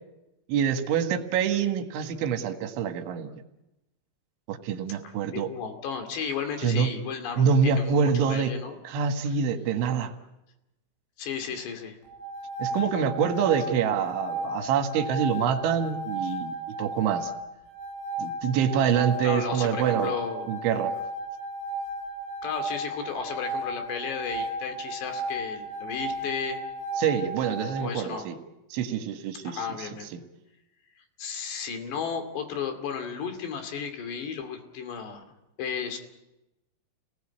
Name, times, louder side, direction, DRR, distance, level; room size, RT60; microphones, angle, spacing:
voice 1, 0.5-3.3 4.5-5.5 6.6-6.9 7.4-8.5 8.9-10.1 12.6-17.3 18.2-20.1 20.5-20.9 27.0-28.4 28.7-30.2, right 7 dB, 80° right, 7 dB, 3.9 m, -26 dB
voice 2, 5.0-8.8 9.3-9.4 11.2-12.0 19.2-20.5 22.4-26.6 27.8-28.3 29.4-30.1 31.2-35.2 35.6-36.0, left 6 dB, 65° left, 7 dB, 4.6 m, -34 dB
sound 1, 12.0-27.9, right 1 dB, 85° left, 9.0 m, -34 dB
29.0 x 19.0 x 8.7 m, 0.94 s
omnidirectional pair, 5.4 m